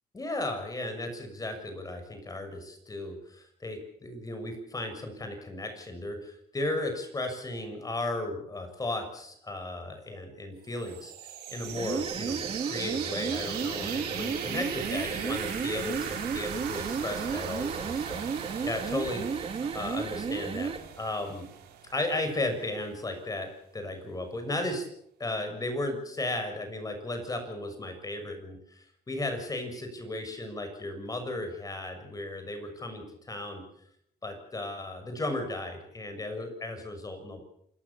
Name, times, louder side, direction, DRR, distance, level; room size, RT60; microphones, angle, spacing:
voice 1, 0.1-19.5 19.7-21.4 21.9-24.9 25.2-33.6 34.2-37.4, left 2 dB, 20° left, 7 dB, 6.7 m, -35 dB
sound 1, 10.7-22.4, right 9 dB, 80° right, 7.0 m, -38 dB
sound 2, 11.7-20.9, right 5 dB, 35° right, 2.0 m, -34 dB
27.5 x 19.0 x 7.3 m, 0.72 s
cardioid pair, 110°, 17 cm